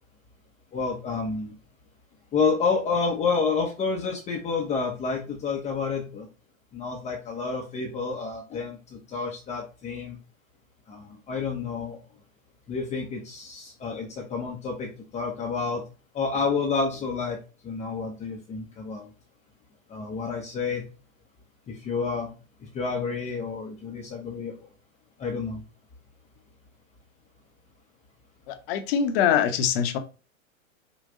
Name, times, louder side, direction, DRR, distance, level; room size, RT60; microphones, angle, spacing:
voice 1, 0.7-1.5 2.3-6.3 6.7-10.2 10.9-12.0 12.7-15.8 16.1-17.4 17.6-19.1 19.9-20.8 21.7-22.3 22.6-24.7 25.2-25.6, left 4 dB, 15° left, -1 dB, 0.7 m, -29 dB
voice 2, 28.5-30.0, left 8 dB, 45° left, 8 dB, 0.9 m, -23 dB
5.5 x 2.3 x 3.8 m, 0.33 s
hypercardioid pair, 115°, 41 cm